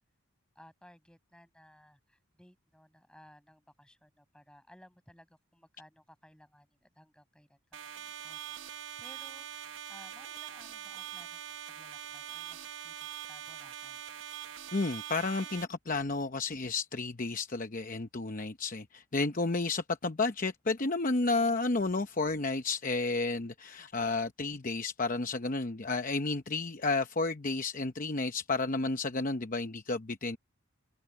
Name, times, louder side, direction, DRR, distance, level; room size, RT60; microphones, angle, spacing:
voice 1, 0.5-14.0, equal, 5° left, 6.7 m, -59 dB
sound 1, 7.7-15.6, right 10 dB, 60° right, 0.8 m, -43 dB
voice 2, 14.7-30.4, left 3 dB, 40° left, 0.8 m, -32 dB
head